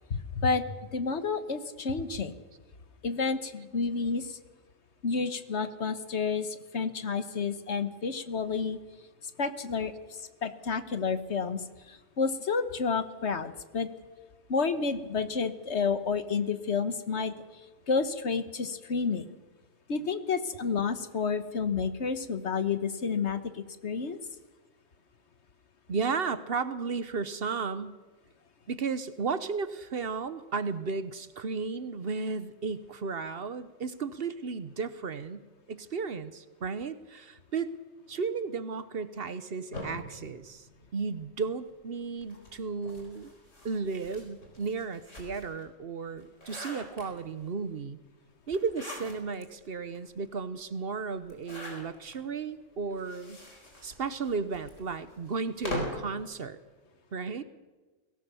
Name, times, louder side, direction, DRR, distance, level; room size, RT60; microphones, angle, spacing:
voice 1, 0.1-0.6 0.9-2.3 3.0-4.4 5.0-8.8 9.4-13.9 14.5-17.3 17.9-19.2 19.9-24.2, left 5 dB, 65° left, 11 dB, 1.5 m, -30 dB
voice 2, 25.9-28.0 28.7-37.7 38.1-40.7 40.9-43.3 43.6-48.0 48.5-53.4 53.8-56.6 57.1-57.4, right 5 dB, 55° right, 13 dB, 1.1 m, -34 dB
sound 1, 39.7-41.3 42.2-45.6 46.1-47.5 48.5-49.4 49.9-50.0 50.2-50.3 51.2-52.2 52.9-56.1, left 1 dB, 90° left, 4.8 m, -42 dB
21.5 x 17.5 x 7.0 m, 1.3 s
omnidirectional pair, 1.2 m